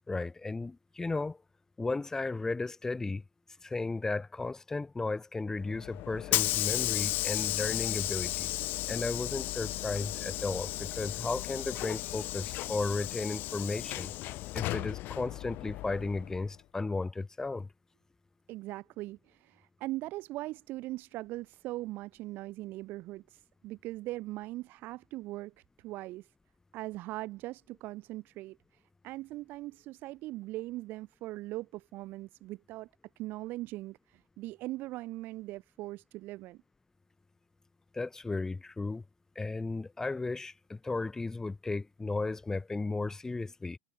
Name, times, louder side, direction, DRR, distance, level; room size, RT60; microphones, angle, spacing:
voice 1, 0.1-1.4 1.8-3.2 3.6-8.5 8.9-14.1 14.5-17.7 37.9-39.0 39.3-43.8, left 3 dB, 10° left, 1.2 m, -34 dB
Hiss / Sliding door, 5.6-16.5, left 17 dB, 45° left, 2.4 m, -34 dB
voice 2, 18.5-26.3 26.7-28.6 29.0-32.9 33.2-36.6, right 18 dB, 45° right, 3.4 m, -40 dB
figure-of-eight pair, 85°, 5 cm